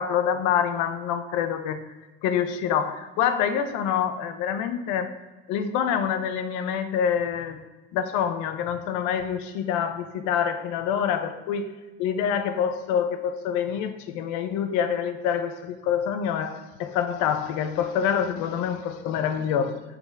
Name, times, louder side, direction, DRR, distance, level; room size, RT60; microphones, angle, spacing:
voice 1, 0.0-1.8 2.2-5.1 5.5-7.6 7.9-11.7 12.0-19.8, left 8 dB, 75° left, 9 dB, 0.8 m, -26 dB
6.6 x 4.1 x 5.8 m, 1.2 s
supercardioid pair, 75°, 31 cm